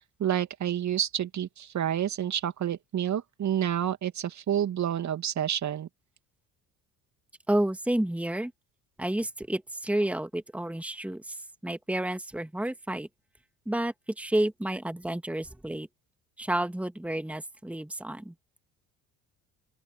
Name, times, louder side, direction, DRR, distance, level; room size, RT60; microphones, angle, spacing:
voice 1, 0.2-5.9, right 10 dB, 40° right, 2.6 m, -29 dB
voice 2, 7.5-8.5 9.0-11.4 11.6-13.1 13.7-15.9 16.4-18.3, right 1 dB, 5° right, 2.3 m, -30 dB
open air
hypercardioid pair, 60°, 41 cm